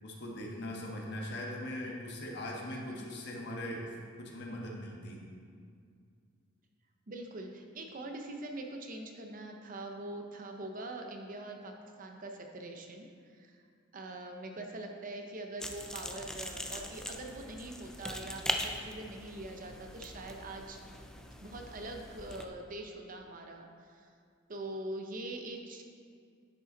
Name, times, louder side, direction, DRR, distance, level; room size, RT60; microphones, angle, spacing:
voice 1, 0.0-3.9 4.2-5.2, left 1 dB, 60° left, -1 dB, 1.3 m, -40 dB
voice 2, 2.7-3.0 7.1-13.6 13.9-20.8 21.4-24.1 24.5-25.8, right 2 dB, 45° right, 3 dB, 0.8 m, -43 dB
sound 1, 15.6-22.5, left 1 dB, 5° left, 0.4 m, -41 dB
10.5 x 5.4 x 4.0 m, 2.2 s
head